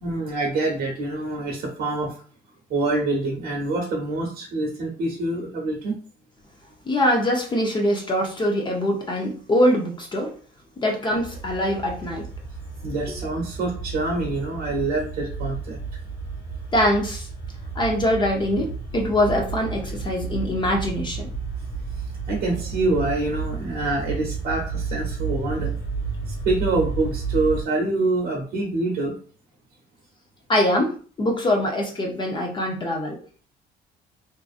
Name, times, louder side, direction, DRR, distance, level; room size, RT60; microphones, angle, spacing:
voice 1, 0.0-2.1 2.7-6.0 12.8-15.8 22.3-25.8 26.3-29.1, right 2 dB, 65° right, -1 dB, 0.7 m, -26 dB
voice 2, 6.9-10.3 10.8-12.3 16.7-17.3 17.8-21.3 30.5-33.2, left 1 dB, 25° left, 1 dB, 0.5 m, -23 dB
sound 1, 11.1-27.6, right 5 dB, 65° left, 0.7 m, -32 dB
2.5 x 2.4 x 2.4 m, 0.42 s
cardioid pair, 110°, 17 cm